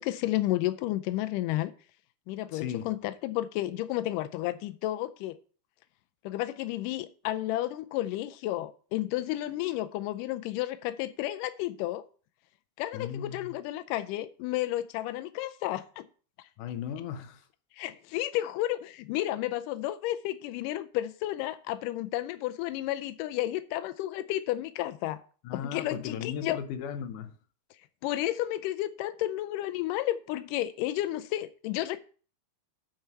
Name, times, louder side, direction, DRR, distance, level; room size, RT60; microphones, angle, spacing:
voice 1, 0.0-1.7 2.3-5.4 6.2-12.1 12.8-16.1 17.7-25.2 25.5-26.6 28.0-32.0, left 15 dB, 85° left, 1.9 m, -32 dB
voice 2, 2.5-2.9 12.9-13.4 16.6-17.4 25.4-27.4, left 8 dB, 70° left, 2.1 m, -36 dB
9.1 x 4.5 x 6.6 m
omnidirectional pair, 4.3 m